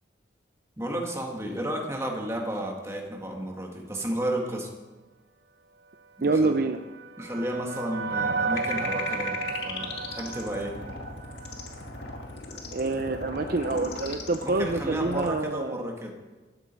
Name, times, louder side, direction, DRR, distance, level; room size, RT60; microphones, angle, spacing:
voice 1, 0.8-4.7 6.2-6.6 7.2-9.4 9.6-10.8 14.4-16.1, right 1 dB, 15° right, 0 dB, 2.1 m, -32 dB
voice 2, 6.2-6.8 12.7-15.9, right 3 dB, 55° right, 8 dB, 0.6 m, -26 dB
sound 1, 6.4-11.8, right 4 dB, 70° right, 0.9 m, -33 dB
sound 2, 8.5-15.3, left 3 dB, 70° left, 2.1 m, -37 dB
14.5 x 12.5 x 4.7 m, 1.2 s
head